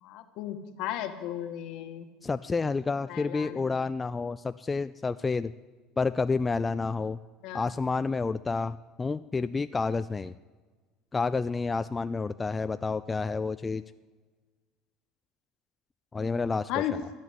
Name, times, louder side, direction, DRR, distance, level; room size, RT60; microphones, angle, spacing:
voice 1, 0.0-2.1 3.1-3.8 7.4-7.6 16.7-16.9, left 12 dB, 70° left, 8 dB, 1.4 m, -35 dB
voice 2, 2.2-5.5 6.0-7.2 7.5-10.3 11.1-13.8 16.1-17.0, left 4 dB, 20° left, 12 dB, 0.3 m, -29 dB
14.0 x 9.1 x 8.2 m, 1.4 s
cardioid pair, 125°, 0 cm